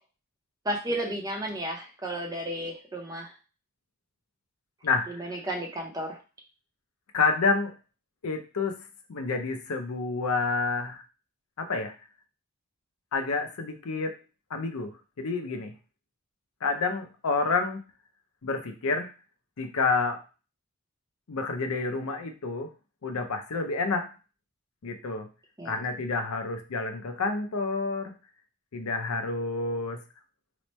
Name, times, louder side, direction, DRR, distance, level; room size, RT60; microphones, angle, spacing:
voice 1, 0.6-3.3 5.2-6.2 25.6-25.7, right 1 dB, 15° right, 1 dB, 0.5 m, -33 dB
voice 2, 4.8-5.2 7.1-7.7 8.2-11.0 11.6-11.9 13.1-14.2 14.5-15.7 16.6-17.9 18.4-19.1 19.6-20.2 21.3-22.7 23.0-24.1 24.8-25.3 25.6-28.1 28.7-30.0, left 4 dB, 75° left, 6 dB, 0.5 m, -29 dB
3.0 x 2.1 x 4.1 m, 0.33 s
head